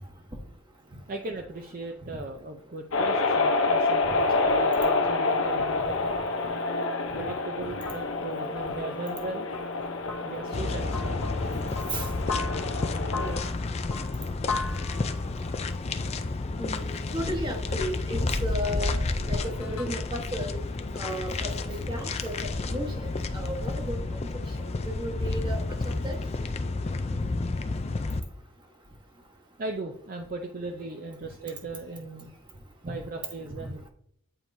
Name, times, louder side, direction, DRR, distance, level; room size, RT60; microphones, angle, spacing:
voice 1, 0.9-6.0 6.5-6.6 7.1-9.5 10.2-11.2 29.6-32.3 32.8-33.9, right 3 dB, 40° right, 3 dB, 0.5 m, -38 dB
sound 1, 2.9-13.4, left 3 dB, 65° left, 0.7 m, -28 dB
sound 2, 5.0-19.9, left 3 dB, 90° left, 1.0 m, -40 dB
sound 3, 10.5-28.2, left 3 dB, 30° left, 0.4 m, -31 dB
voice 2, 13.1-13.4 16.6-19.0 19.3-20.6 21.0-24.0 24.8-25.6 26.0-26.2 33.6-33.7, equal, 20° right, 1 dB, 1.1 m, -34 dB
8.8 x 4.5 x 2.7 m, 0.69 s
head